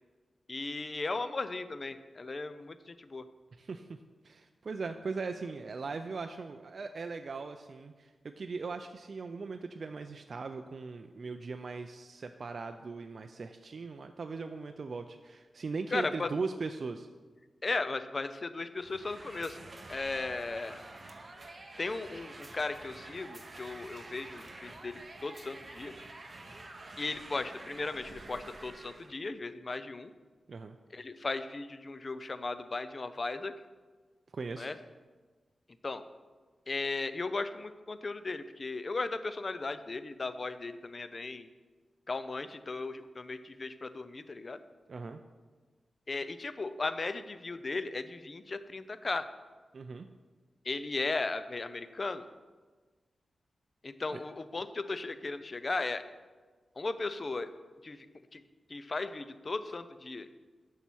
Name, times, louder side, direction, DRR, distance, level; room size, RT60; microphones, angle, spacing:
voice 1, 0.5-3.3 15.9-16.3 17.6-19.6 19.9-20.9 21.8-25.9 27.0-30.1 30.9-33.5 34.6-34.8 35.8-36.0 36.7-41.5 42.1-44.6 46.1-49.3 50.6-52.3 53.8-56.0 56.8-57.5 57.8-58.1 58.3-58.4 58.7-60.3, left 3 dB, 35° left, 12 dB, 0.4 m, -36 dB
voice 2, 3.6-4.0 4.2-17.1 30.5-30.8 34.3-34.7 44.9-45.2 49.7-50.1 54.1-54.2, right 4 dB, 50° right, 6 dB, 0.3 m, -39 dB
sound 1, 18.8-29.2, right 2 dB, 30° right, 0.8 m, -48 dB
7.1 x 5.6 x 6.1 m, 1.4 s
wide cardioid pair, 140°, 0 cm